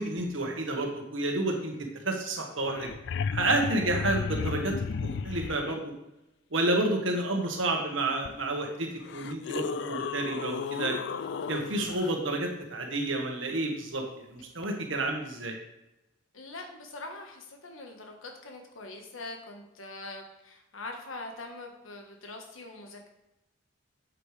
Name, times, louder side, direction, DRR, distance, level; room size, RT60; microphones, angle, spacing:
voice 1, 0.0-2.9 3.3-4.7 5.0-5.9 6.5-10.9 11.5-14.0 14.3-15.6, right 2 dB, 75° right, 2 dB, 1.5 m, -30 dB
sound 1, 2.4-2.5 2.6-5.8 8.2-8.3 9.0-12.1 14.6-14.7, left 5 dB, 60° left, 0.3 m, -34 dB
voice 2, 16.3-23.1, left 2 dB, 90° left, 3 dB, 1.4 m, -43 dB
8.1 x 7.7 x 3.4 m, 0.92 s
head